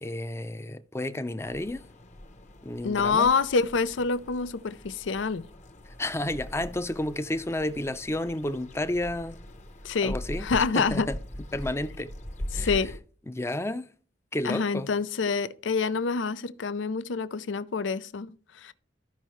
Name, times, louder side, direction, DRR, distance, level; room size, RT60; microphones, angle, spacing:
voice 1, 0.0-1.8 2.6-3.3 5.9-9.4 10.0-10.5 10.7-11.2 11.5-12.1 12.5-12.7 13.3-13.9 14.3-14.9, left 1 dB, 15° left, 0.5 m, -31 dB
sound 1, 1.4-13.0, equal, 40° left, 1.0 m, -41 dB
voice 2, 2.8-5.4 9.8-11.1 12.5-13.0 14.4-18.7, left 5 dB, 90° left, 0.5 m, -27 dB
14.0 x 5.5 x 3.1 m
head